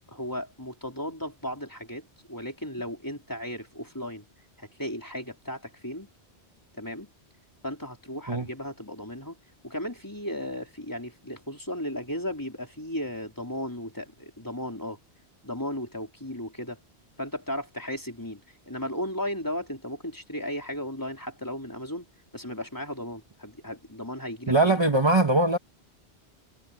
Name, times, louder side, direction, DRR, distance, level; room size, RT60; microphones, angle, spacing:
voice 1, 0.1-4.2 4.6-6.1 6.8-7.1 7.6-9.4 9.6-15.0 15.4-16.8 17.2-22.1 22.3-24.8, equal, 15° left, 3.9 m, -35 dB
voice 2, 24.5-25.6, right 2 dB, 25° right, 1.4 m, -21 dB
omnidirectional pair, 1.1 m